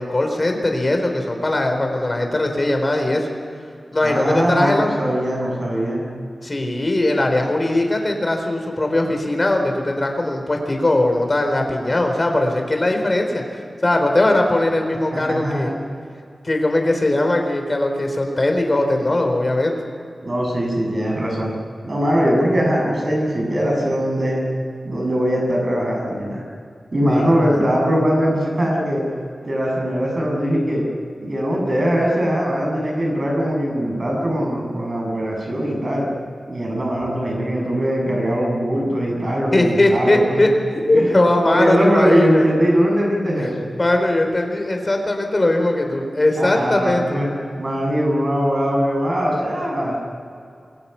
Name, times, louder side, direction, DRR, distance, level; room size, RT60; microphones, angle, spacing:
voice 1, 0.0-3.3 3.9-5.0 6.4-15.7 16.4-19.7 27.1-27.6 39.5-42.5 43.4-47.2, left 1 dB, 30° left, 4 dB, 4.3 m, -20 dB
voice 2, 4.0-6.0 15.1-15.7 20.2-21.5 21.8-24.4 24.8-26.4 26.9-29.0 29.4-30.8 31.2-36.1 36.5-40.5 40.9-41.1 41.5-43.6 46.4-47.3 47.6-50.0, equal, 45° right, -1 dB, 7.9 m, -21 dB
28.5 x 22.5 x 5.9 m, 2.4 s
wide cardioid pair, 100°, 0 cm